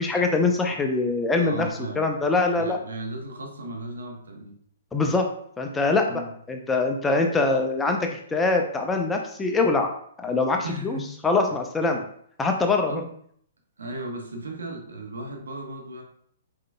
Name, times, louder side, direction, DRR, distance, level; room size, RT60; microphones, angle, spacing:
voice 1, 0.0-1.7 2.0-2.8 4.9-5.3 5.6-6.2 6.5-9.9 10.2-11.0 11.2-12.0 12.4-12.9, left 3 dB, 10° left, 3 dB, 0.5 m, -23 dB
voice 2, 1.3-2.1 2.6-4.6 6.1-6.3 10.6-11.0 12.8-13.1 13.8-16.0, right 2 dB, 80° right, 2 dB, 1.0 m, -35 dB
4.8 x 3.7 x 2.2 m, 0.64 s
hypercardioid pair, 135°, 0 cm